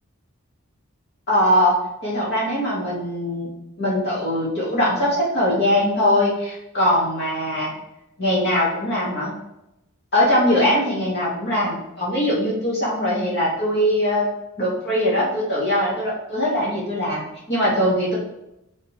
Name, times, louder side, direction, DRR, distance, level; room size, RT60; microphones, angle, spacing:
voice 1, 1.3-3.5 3.8-7.7 8.2-9.3 10.1-14.3 14.6-18.2, left 1 dB, 45° left, -6 dB, 2.7 m, -21 dB
6.4 x 6.0 x 3.6 m, 0.87 s
head